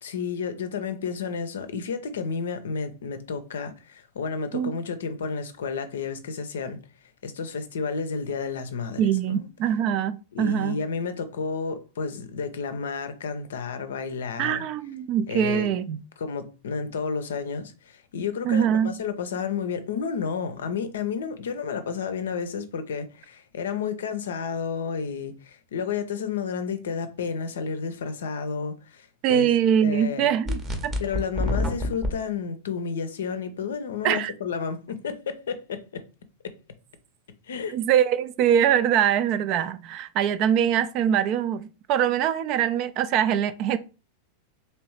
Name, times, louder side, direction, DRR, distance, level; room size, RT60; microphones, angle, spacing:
voice 1, 0.0-6.9 7.2-9.0 9.3-9.5 10.3-14.6 15.3-15.7 16.2-29.5 29.8-30.3 31.0-36.0 36.4-36.5 37.5-37.8, left 5 dB, 65° left, 0.5 m, -31 dB
voice 2, 9.0-10.8 14.4-16.0 18.4-18.9 29.2-30.9 34.0-34.3 37.7-43.8, right 9 dB, 40° right, 0.3 m, -23 dB
sound 1, 30.5-32.1, left 1 dB, 20° right, 0.8 m, -27 dB
3.0 x 3.0 x 3.1 m
figure-of-eight pair, 90°, 0 cm